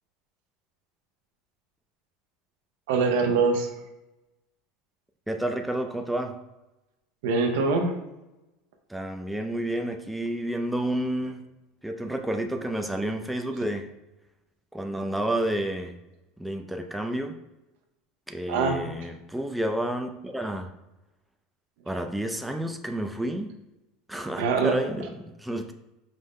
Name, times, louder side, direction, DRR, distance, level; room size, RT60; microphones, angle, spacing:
voice 1, 2.9-3.7 7.2-7.9 18.5-18.8 24.4-24.7, right 4 dB, 80° right, 3 dB, 0.7 m, -23 dB
voice 2, 5.3-6.3 8.9-11.4 11.8-13.9 14.7-16.0 16.4-17.4 18.3-20.7 21.9-23.6 24.1-25.7, right 1 dB, 5° right, 5 dB, 0.4 m, -30 dB
5.1 x 2.1 x 3.6 m, 0.98 s
supercardioid pair, 110°, 0 cm